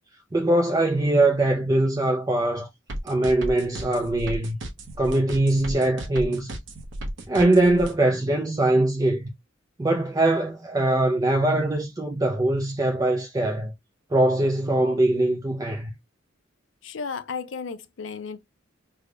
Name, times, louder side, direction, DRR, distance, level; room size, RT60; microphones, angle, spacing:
voice 1, 0.3-2.7 3.0-4.6 5.0-6.6 7.3-9.3 9.8-13.7 14.1-15.9, right 1 dB, 20° right, 0.4 m, -22 dB
sound 1, 2.9-7.9, right 1 dB, 75° right, 0.8 m, -34 dB
voice 2, 16.8-18.4, left 5 dB, 75° left, 0.5 m, -34 dB
3.4 x 2.2 x 3.8 m
head